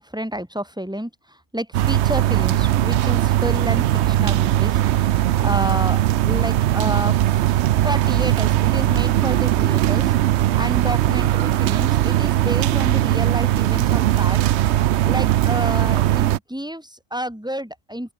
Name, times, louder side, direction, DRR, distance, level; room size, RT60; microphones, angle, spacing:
voice 1, 0.0-7.5 7.8-10.1 10.6-14.4 15.0-18.1, equal, 5° right, 4.2 m, -30 dB
sound 1, 1.7-16.4, right 13 dB, 65° right, 0.8 m, -19 dB
open air
omnidirectional pair, 1.4 m